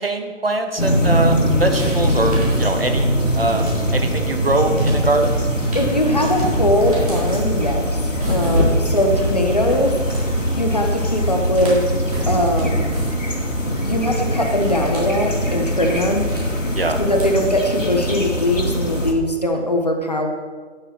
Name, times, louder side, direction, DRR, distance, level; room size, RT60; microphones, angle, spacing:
voice 1, 0.0-3.1 3.3-5.3 16.7-17.0, right 2 dB, 50° right, 5 dB, 1.4 m, -22 dB
sound 1, 0.8-19.1, equal, 85° left, 2.5 m, -22 dB
sound 2, 1.7-4.1 4.5-18.4, equal, 30° right, 3.8 m, -28 dB
voice 2, 5.7-10.0 10.6-11.9 12.3-12.9 13.7-16.3 17.0-20.3, left 1 dB, 35° left, 4 dB, 1.0 m, -21 dB
10.5 x 9.9 x 4.4 m, 1.5 s
figure-of-eight pair, 160°, 37 cm